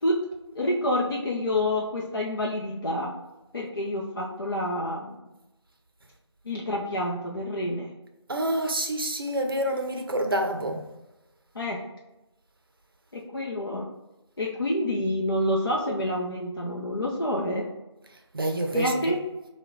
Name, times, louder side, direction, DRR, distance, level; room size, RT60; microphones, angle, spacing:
voice 1, 0.6-3.1 3.5-5.2 6.5-7.9 11.5-11.8 13.1-13.9 14.4-17.6 18.7-19.2, left 1 dB, 50° left, -3 dB, 0.6 m, -28 dB
voice 2, 8.3-10.8 18.3-18.9, right 1 dB, 50° right, 4 dB, 0.6 m, -27 dB
4.5 x 2.2 x 4.0 m, 1.0 s
figure-of-eight pair, 165°, 15 cm